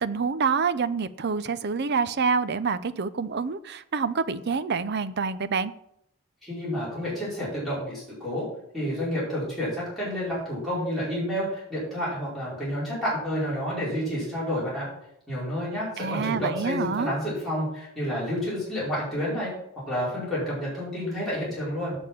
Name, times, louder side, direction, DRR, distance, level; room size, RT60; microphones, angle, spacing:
voice 1, 0.0-5.7 16.0-17.2, right 5 dB, 50° right, 13 dB, 0.6 m, -27 dB
voice 2, 6.4-8.5 8.7-14.9 15.3-19.5 19.9-22.0, equal, ahead, -10 dB, 5.0 m, -29 dB
8.6 x 7.0 x 7.5 m, 0.76 s
head